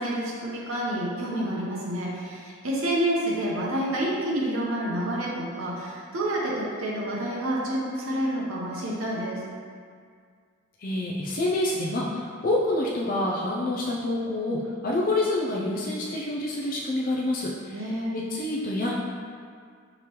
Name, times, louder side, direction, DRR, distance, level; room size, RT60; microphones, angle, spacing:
voice 1, 0.0-9.4 17.7-18.1, right 1 dB, 75° right, -4 dB, 0.8 m, -28 dB
voice 2, 10.8-18.9, left 1 dB, 40° left, -3 dB, 0.4 m, -27 dB
5.0 x 3.0 x 3.0 m, 2.1 s
head